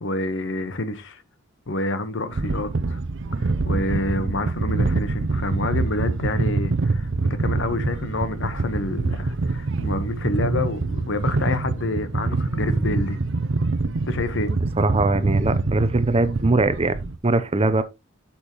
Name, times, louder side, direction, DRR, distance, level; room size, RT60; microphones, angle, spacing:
voice 1, 0.0-1.2 1.7-3.0 3.4-13.2 14.1-14.5, left 2 dB, 65° left, 1.2 m, -28 dB
sound 1, 2.3-17.2, right 3 dB, 65° right, 0.7 m, -25 dB
voice 2, 14.8-17.8, right 2 dB, 30° right, 0.7 m, -21 dB
8.3 x 7.3 x 3.0 m
head